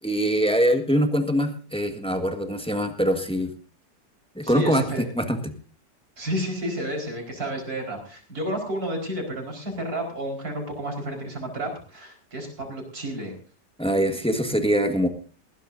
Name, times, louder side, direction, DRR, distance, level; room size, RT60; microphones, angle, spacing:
voice 1, 0.0-3.5 4.3-4.8 5.1-5.5 13.8-15.1, equal, 5° left, 5 dB, 1.4 m, -23 dB
voice 2, 4.4-5.0 6.2-13.3, equal, 55° right, 2 dB, 5.3 m, -31 dB
19.5 x 16.5 x 2.7 m, 0.37 s
omnidirectional pair, 1.9 m